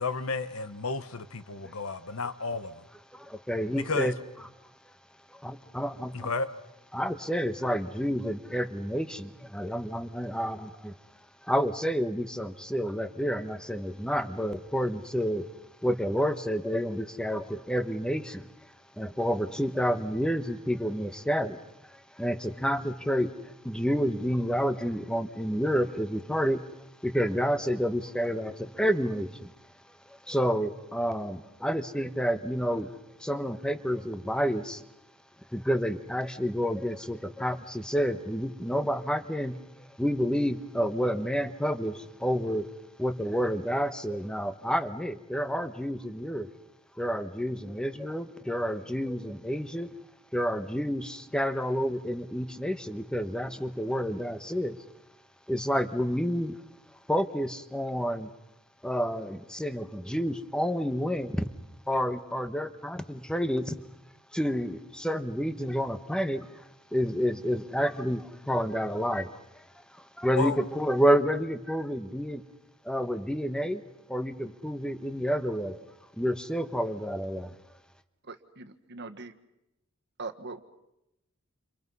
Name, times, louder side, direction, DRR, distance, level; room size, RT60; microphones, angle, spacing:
voice 1, 0.0-2.8 3.8-4.1 6.1-6.5 70.3-70.6, left 3 dB, 70° left, 12 dB, 1.2 m, -32 dB
voice 2, 3.1-4.1 5.4-6.3 6.9-10.9 11.5-15.5 15.8-18.5 19.0-21.6 21.9-23.3 23.6-26.6 27.0-29.5 30.3-32.9 33.2-34.8 35.5-39.6 40.0-42.7 43.0-46.5 47.0-49.9 50.3-54.8 55.5-56.6 57.1-58.3 58.8-61.5 61.9-63.7 64.3-66.5 66.9-69.4 70.2-72.4 72.8-73.8 74.1-75.8 76.2-77.6, equal, 5° left, 10 dB, 1.1 m, -29 dB
voice 3, 78.2-79.3 80.2-80.6, right 3 dB, 50° right, 6 dB, 1.6 m, -41 dB
29.0 x 28.0 x 5.5 m, 0.88 s
head